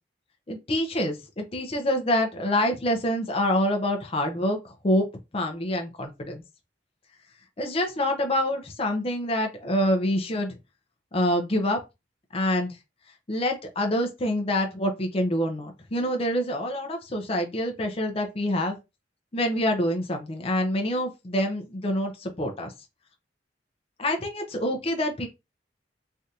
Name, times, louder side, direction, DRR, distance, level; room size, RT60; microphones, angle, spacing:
voice 1, 0.5-4.6 4.8-5.1 5.3-6.4 7.6-10.6 11.1-11.8 12.3-12.8 13.3-18.8 19.3-22.7 24.0-25.3, left 1 dB, 35° left, 0.6 m, -26 dB
3.3 x 2.5 x 2.8 m
head